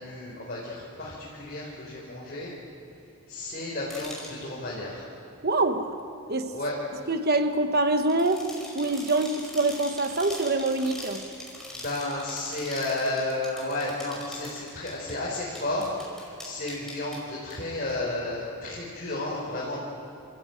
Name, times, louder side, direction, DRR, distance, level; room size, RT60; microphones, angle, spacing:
voice 1, 0.0-2.6 3.3-5.1 6.5-6.7 11.7-19.8, left 2 dB, 45° left, -5 dB, 4.4 m, -32 dB
sound 1, 3.9-4.3 8.0-17.2 17.5-17.6 17.9-18.0, left 1 dB, ahead, 5.3 m, -42 dB
voice 2, 5.4-5.9 6.3-6.5 6.9-8.5 8.7-11.2, right 2 dB, 45° right, 7 dB, 1.3 m, -25 dB
30.0 x 14.5 x 9.1 m, 2.8 s
head